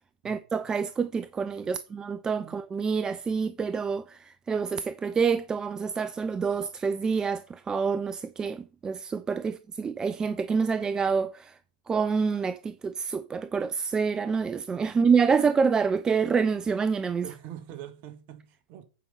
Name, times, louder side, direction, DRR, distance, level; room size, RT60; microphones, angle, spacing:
voice 1, 0.2-11.6 11.9-17.3, right 5 dB, 15° right, 0.4 m, -27 dB
voice 2, 17.2-18.9, right 11 dB, 35° right, 1.6 m, -44 dB
8.3 x 5.3 x 5.4 m
figure-of-eight pair, 100°, 5 cm